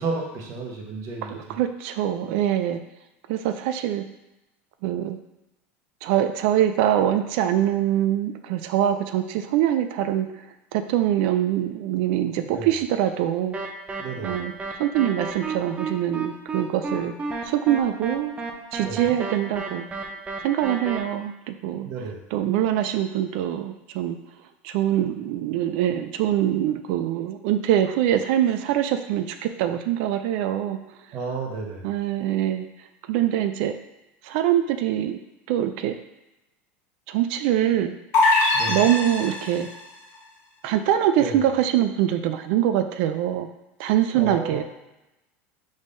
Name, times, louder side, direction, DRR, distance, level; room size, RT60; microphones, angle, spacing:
voice 1, 0.0-1.6 12.4-12.7 14.0-14.5 18.8-19.1 21.8-22.2 31.1-31.9 38.5-38.9 41.2-41.4 44.1-44.6, right 4 dB, 50° right, 0 dB, 1.1 m, -32 dB
voice 2, 1.6-2.8 3.3-4.0 4.8-5.2 6.0-10.3 10.7-13.6 14.2-14.5 14.8-17.1 17.4-18.3 18.7-19.8 20.4-21.9 22.3-24.2 24.6-30.8 31.8-32.7 33.1-33.7 34.2-35.2 35.5-35.9 37.1-37.9 38.7-39.7 40.6-43.5 43.8-44.6, right 11 dB, 65° right, 8 dB, 0.4 m, -23 dB
sound 1, 13.5-21.0, right 4 dB, 20° right, 0.6 m, -32 dB
sound 2, 38.1-39.8, left 2 dB, 45° left, 1.1 m, -22 dB
5.0 x 3.6 x 2.6 m, 0.96 s
hypercardioid pair, 100°, 7 cm